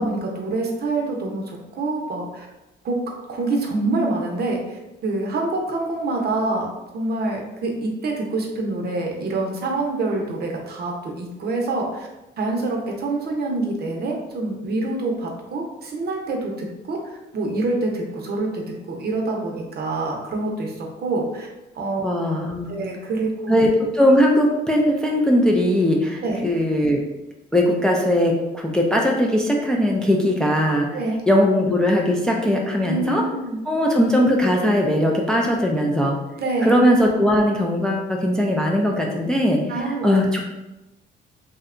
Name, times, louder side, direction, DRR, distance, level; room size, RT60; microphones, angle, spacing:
voice 1, 0.0-2.5 2.8-3.0 3.3-12.1 12.4-21.5 21.7-22.1 22.7-23.6 26.2-26.4 30.9-31.2 32.9-33.6 36.4-36.8 39.7-40.1, right 2 dB, 55° right, 0 dB, 0.6 m, -26 dB
voice 2, 22.0-22.7 23.5-27.0 27.5-30.9 31.3-33.2 33.7-36.2 36.6-39.6 40.0-40.4, equal, 5° left, 0 dB, 0.3 m, -19 dB
2.7 x 2.1 x 2.4 m, 0.99 s
cardioid pair, 90°, 20 cm